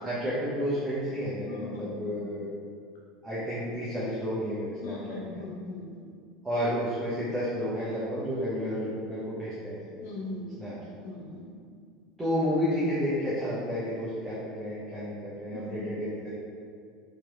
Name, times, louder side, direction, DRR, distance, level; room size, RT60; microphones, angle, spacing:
voice 1, 0.0-2.5 3.2-5.4 6.4-9.8 10.6-10.7 12.2-16.3, equal, 10° right, -10 dB, 0.9 m, -31 dB
voice 2, 1.5-2.4 4.8-6.0 10.0-10.7 11.0-11.5 15.5-15.9, left 2 dB, 60° left, -5 dB, 1.0 m, -39 dB
4.5 x 3.0 x 2.4 m, 2.2 s
figure-of-eight pair, 75°, 0 cm